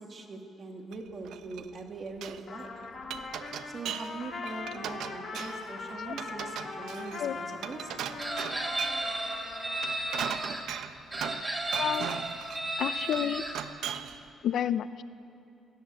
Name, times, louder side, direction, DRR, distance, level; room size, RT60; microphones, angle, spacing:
voice 1, 0.0-2.7 3.7-7.9, right 3 dB, 30° right, 3 dB, 2.2 m, -42 dB
Glass, 0.9-1.8 2.1-2.4 2.8-4.2 4.4-5.7 6.1-9.1 9.7-11.5 11.7-12.7 13.1-14.2, right 9 dB, 75° right, 0.9 m, -38 dB
Trumpet, 2.5-10.3, left 4 dB, 40° left, 2.8 m, -41 dB
Chicken rooster, 8.2-10.6 11.1-13.5, right 1 dB, 15° right, 2.2 m, -33 dB
voice 2, 11.8-12.2 12.8-13.4 14.4-15.0, left 9 dB, 60° left, 14 dB, 0.6 m, -30 dB
25.5 x 17.5 x 8.2 m, 2.7 s
cardioid pair, 165°, 0 cm